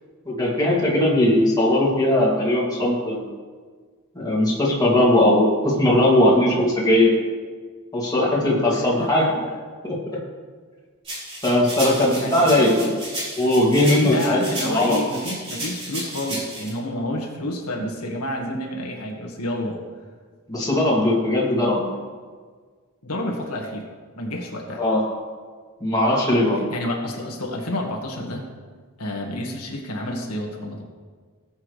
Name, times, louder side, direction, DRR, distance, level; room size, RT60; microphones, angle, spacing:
voice 1, 0.3-3.3 4.1-7.1 7.9-9.5 9.8-10.0 11.4-12.9 13.4-15.0 20.5-22.0 24.8-25.0 25.8-26.6, left 1 dB, 15° left, -5 dB, 2.4 m, -19 dB
voice 2, 8.7-9.1 9.4-9.6 12.2-13.0 14.0-19.8 23.0-23.9 24.2-24.8 26.5-28.4 29.0-30.8, left 1 dB, 85° left, 0 dB, 1.6 m, -30 dB
sound 1, 11.1-16.7, right 1 dB, 25° right, 3.5 m, -33 dB
18.0 x 7.4 x 3.2 m, 1.5 s
head